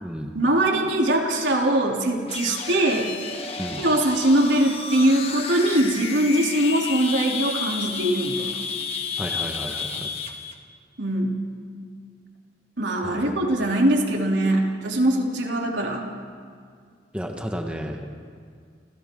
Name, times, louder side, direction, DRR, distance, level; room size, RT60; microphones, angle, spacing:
voice 1, 0.3-3.1 3.8-8.5 11.0-11.4 12.8-16.0, right 1 dB, 80° right, 0 dB, 3.4 m, -22 dB
sound 1, 2.3-10.5, left 5 dB, 35° left, 1.7 m, -32 dB
voice 2, 9.2-10.1 13.0-13.6 17.1-18.2, equal, 5° right, 2 dB, 1.6 m, -33 dB
30.0 x 28.5 x 3.9 m, 2.1 s
head